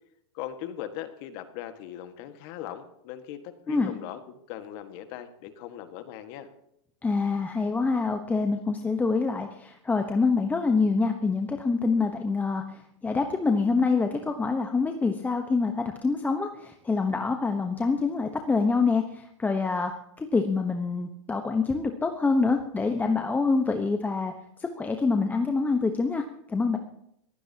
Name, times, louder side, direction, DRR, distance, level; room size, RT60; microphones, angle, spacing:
voice 1, 0.3-6.5, left 11 dB, 50° left, 8 dB, 1.7 m, -39 dB
voice 2, 7.0-24.3 24.6-26.2 26.5-26.8, left 4 dB, 10° left, 5 dB, 1.1 m, -26 dB
23.5 x 16.0 x 2.9 m, 0.76 s
hypercardioid pair, 130°, 16 cm